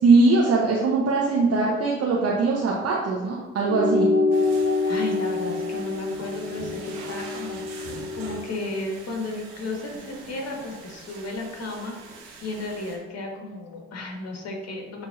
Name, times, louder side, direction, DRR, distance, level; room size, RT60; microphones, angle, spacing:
voice 1, 0.0-4.1, right 3 dB, 50° right, -3 dB, 1.1 m, -21 dB
sound 1, 3.6-8.4, left 3 dB, 25° right, 1.8 m, -26 dB
sound 2, 4.3-13.0, right 3 dB, 80° right, 1.2 m, -43 dB
voice 2, 4.8-15.1, left 2 dB, 50° left, 0 dB, 1.8 m, -34 dB
9.8 x 3.7 x 2.7 m, 1.3 s
hypercardioid pair, 45°, 32 cm